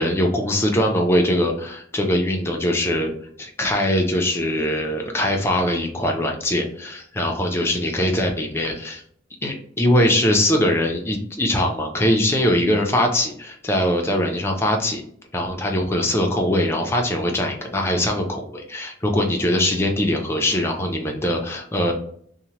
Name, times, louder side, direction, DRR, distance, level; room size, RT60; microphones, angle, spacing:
voice 1, 0.0-3.1 3.4-9.0 9.4-15.0 15.3-21.9, left 1 dB, 15° left, 2 dB, 0.4 m, -22 dB
2.8 x 2.1 x 2.9 m, 0.64 s
head